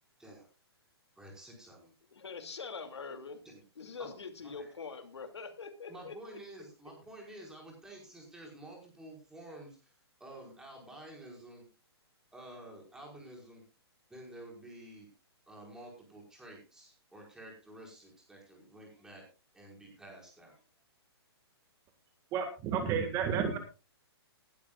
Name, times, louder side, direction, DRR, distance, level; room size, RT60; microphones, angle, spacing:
voice 1, 1.2-1.9 3.4-3.6 4.0-4.2 4.4-4.7 5.9-9.9 10.2-11.6 12.3-13.6 14.1-15.1 15.5-19.3 19.5-20.6, right 1 dB, 5° right, -1 dB, 5.1 m, -50 dB
voice 2, 2.1-3.4 3.8-6.4, left 5 dB, 90° left, 7 dB, 2.6 m, -44 dB
voice 3, 22.3-23.6, right 7 dB, 20° right, 7 dB, 1.9 m, -31 dB
19.5 x 12.0 x 2.4 m, 0.30 s
hypercardioid pair, 155°, 14 cm